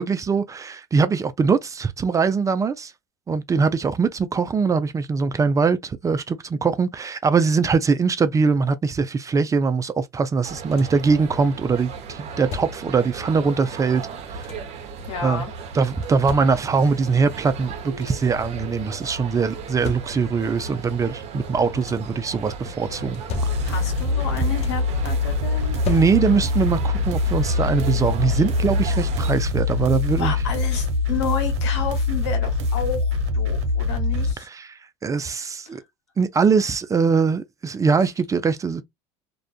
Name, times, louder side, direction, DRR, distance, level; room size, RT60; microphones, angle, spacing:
voice 1, 0.0-2.9 3.3-14.0 14.3-14.5 15.2-15.4 15.7-23.2 25.9-30.3 34.4-35.8 36.2-38.8, right 5 dB, 25° right, 0.4 m, -22 dB
sound 1, 10.3-11.1 12.1-13.1 14.0-14.9 15.8-17.0 17.5-17.6 17.8-18.4 19.4-20.5 21.5-22.2 22.9-24.0 24.2-25.0 25.6-26.6 27.9-28.0 28.5-28.7, left 7 dB, 50° left, 0.5 m, -38 dB
sound 2, 10.4-29.3, right 4 dB, 50° right, 0.8 m, -35 dB
voice 2, 15.1-15.5 22.6-23.1 23.6-25.8 30.2-34.5 35.7-35.8, left 7 dB, 85° left, 1.0 m, -31 dB
sound 3, 23.3-34.3, left 3 dB, 85° right, 0.6 m, -23 dB
2.4 x 2.2 x 2.3 m
hypercardioid pair, 85°, 14 cm